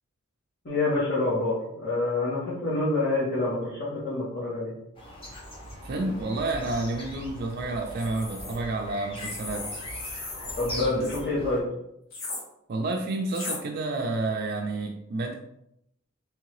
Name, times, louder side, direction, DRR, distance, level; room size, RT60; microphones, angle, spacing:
voice 1, 0.6-4.7 10.6-11.6, left 2 dB, 55° left, -9 dB, 1.4 m, -27 dB
sound 1, 5.0-11.6, equal, 25° left, 0.9 m, -41 dB
voice 2, 5.8-9.8 12.7-15.4, right 2 dB, 50° right, 2 dB, 0.4 m, -30 dB
sound 2, 7.9-8.6 9.2-11.2 12.1-12.4 13.3-13.6, left 2 dB, 75° left, 1.2 m, -37 dB
3.6 x 3.2 x 3.2 m, 0.78 s
head